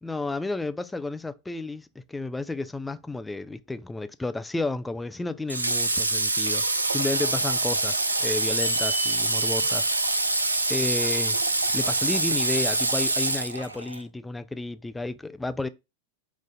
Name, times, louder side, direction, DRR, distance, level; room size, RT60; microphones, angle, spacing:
voice 1, 0.0-6.6 6.9-11.4 11.7-15.7, left 2 dB, 10° left, 0.3 m, -32 dB
Water / Water tap faucet, 5.5-14.0, right 2 dB, 85° right, 0.3 m, -25 dB
sound 1, 8.6-11.2 12.5-12.6, equal, 70° left, 1.0 m, -37 dB
3.9 x 2.5 x 3.8 m
figure-of-eight pair, 90°, 0 cm